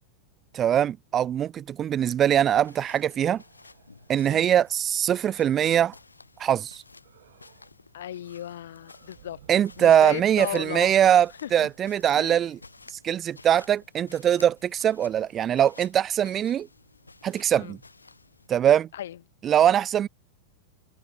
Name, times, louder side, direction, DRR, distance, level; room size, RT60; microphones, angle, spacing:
voice 1, 0.5-3.4 4.1-5.9 6.4-6.8 9.5-12.6 13.0-16.7 17.2-17.8 18.5-18.9 19.4-20.1, right 10 dB, 25° right, 0.3 m, -22 dB
sound 1, 2.1-5.9 7.0-7.8 8.1-12.9, right 13 dB, 60° right, 3.1 m, -57 dB
sound 2, 2.5-18.5, left 3 dB, 80° left, 6.7 m, -53 dB
voice 2, 7.9-9.4 9.8-10.9 11.4-11.7 12.1-12.4 17.5-17.8 18.9-19.2, left 11 dB, 60° left, 1.2 m, -35 dB
figure-of-eight pair, 90°, 0 cm